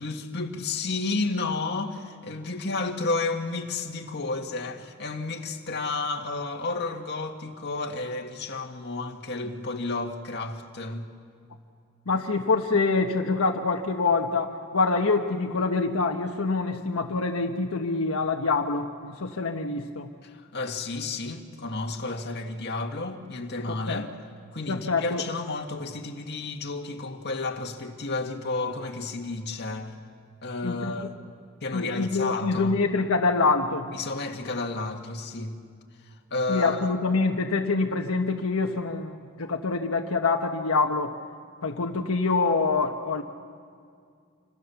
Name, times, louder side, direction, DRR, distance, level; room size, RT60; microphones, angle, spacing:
voice 1, 0.0-11.1 20.2-24.1 24.5-30.0 30.4-31.1 31.6-32.8 33.9-35.6 36.0-36.9, left 3 dB, 55° left, 2.0 m, -31 dB
voice 2, 12.1-20.1 23.7-24.0 24.7-25.2 30.6-31.1 31.7-33.9 36.5-41.1 41.6-43.2, left 3 dB, 80° left, 1.3 m, -25 dB
27.0 x 26.5 x 7.1 m
head